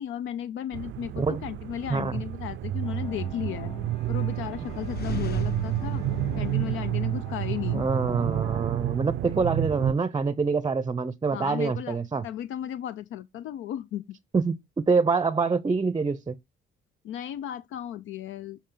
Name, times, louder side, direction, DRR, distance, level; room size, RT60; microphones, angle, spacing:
voice 1, 0.0-3.7 4.1-6.0 6.4-7.9 11.3-12.0 12.2-14.0 17.0-18.6, left 10 dB, 80° left, 0.5 m, -35 dB
sound 1, 0.7-9.9, right 15 dB, 75° right, 0.4 m, -30 dB
voice 2, 1.9-2.2 7.7-12.2 14.3-16.4, right 4 dB, 20° right, 0.6 m, -26 dB
sound 2, 2.8-8.6, left 2 dB, 30° left, 1.8 m, -42 dB
sound 3, 4.6-7.6, left 4 dB, 50° left, 1.3 m, -38 dB
9.0 x 4.3 x 3.7 m
cardioid pair, 90°, 20 cm